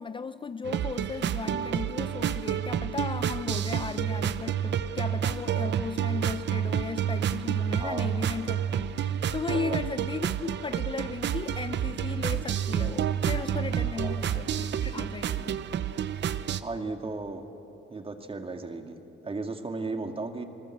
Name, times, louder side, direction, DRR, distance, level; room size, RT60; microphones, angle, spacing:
voice 1, 0.0-15.6, left 5 dB, 25° left, 0.5 m, -36 dB
sound 1, 0.6-16.6, right 9 dB, 65° right, 0.8 m, -29 dB
voice 2, 16.6-17.5 17.9-20.5, right 3 dB, 30° right, 2.1 m, -35 dB
27.5 x 20.0 x 7.8 m
cardioid pair, 90°, 20 cm